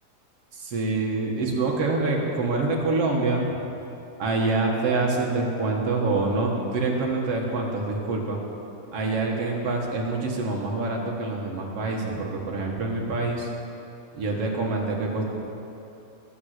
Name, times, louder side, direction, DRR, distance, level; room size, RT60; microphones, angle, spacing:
voice 1, 0.5-3.5 4.2-8.4 8.9-13.5 14.1-15.3, right 3 dB, 50° right, -1 dB, 2.3 m, -26 dB
20.0 x 7.2 x 8.2 m, 2.9 s
omnidirectional pair, 3.8 m